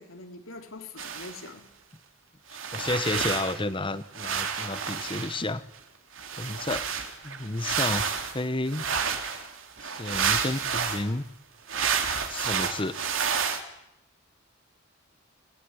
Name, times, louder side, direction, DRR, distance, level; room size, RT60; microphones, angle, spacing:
voice 1, 0.0-1.7, left 3 dB, 90° left, 3.7 m, -43 dB
sound 1, 1.0-1.5 2.5-3.6 4.1-5.5 6.2-11.0 11.7-13.6, right 6 dB, 75° right, 3.0 m, -30 dB
voice 2, 2.7-5.6 6.4-6.9 7.2-8.9 9.8-11.2 12.3-13.0, left 2 dB, 25° left, 1.1 m, -31 dB
27.5 x 19.5 x 10.0 m
head